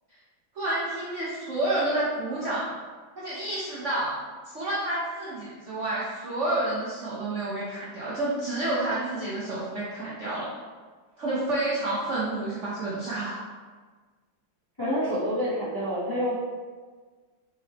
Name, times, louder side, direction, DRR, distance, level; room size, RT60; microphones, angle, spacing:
voice 1, 0.5-2.7 3.1-4.1 4.5-10.5 11.2-13.4, right 2 dB, 60° right, -8 dB, 0.7 m, -29 dB
voice 2, 14.8-16.3, equal, 25° left, -9 dB, 0.5 m, -27 dB
5.3 x 3.2 x 2.9 m, 1.4 s
omnidirectional pair, 2.3 m